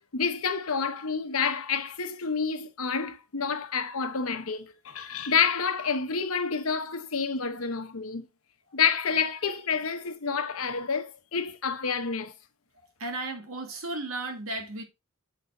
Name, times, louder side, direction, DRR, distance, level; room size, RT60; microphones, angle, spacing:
voice 1, 0.1-8.3 8.7-12.3, left 6 dB, 85° left, 1.0 m, -29 dB
voice 2, 13.0-14.8, right 2 dB, 75° right, 1.8 m, -34 dB
7.0 x 4.1 x 4.1 m
head